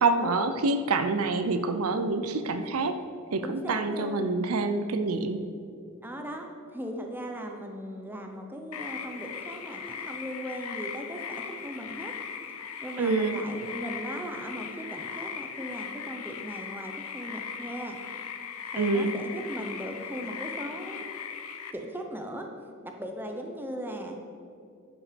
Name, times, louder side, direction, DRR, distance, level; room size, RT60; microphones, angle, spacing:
voice 1, 0.0-3.0 3.3-5.4 13.0-13.4 18.7-19.1, right 3 dB, 80° right, 9 dB, 0.6 m, -26 dB
voice 2, 3.4-4.3 6.0-12.1 12.8-18.0 18.7-21.1 21.7-22.5 22.8-24.2, equal, 10° right, 3 dB, 0.8 m, -38 dB
sound 1, 8.7-21.7, left 7 dB, 85° left, 0.7 m, -39 dB
10.5 x 5.9 x 5.1 m, 2.4 s
head